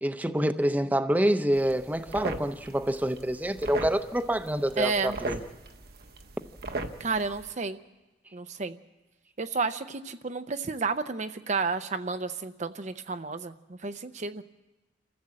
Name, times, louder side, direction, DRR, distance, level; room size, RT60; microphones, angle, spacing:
voice 1, 0.0-5.4, right 1 dB, 10° right, 0.7 m, -27 dB
sound 1, 1.5-7.5, right 2 dB, 55° right, 1.1 m, -38 dB
voice 2, 4.8-5.2 7.0-7.8 8.3-8.8 9.4-14.4, right 4 dB, 40° right, 0.6 m, -31 dB
27.5 x 14.5 x 7.6 m
head